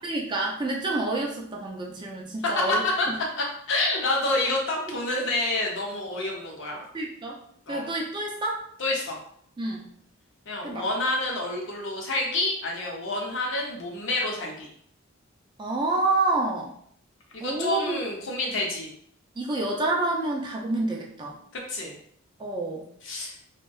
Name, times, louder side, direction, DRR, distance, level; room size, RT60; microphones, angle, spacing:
voice 1, 0.0-2.8 3.1-3.2 5.1-5.2 6.9-7.4 7.7-8.6 9.6-9.9 10.6-10.8 15.6-16.7 17.4-18.0 19.4-21.4 22.4-22.8, right 2 dB, 20° right, -1 dB, 0.3 m, -28 dB
voice 2, 2.4-3.1 3.4-6.9 7.7-7.9 8.8-9.2 10.5-14.7 17.3-18.9 21.7-22.0 23.0-23.3, left 2 dB, 65° left, -1 dB, 0.6 m, -28 dB
2.6 x 2.1 x 2.2 m, 0.64 s
head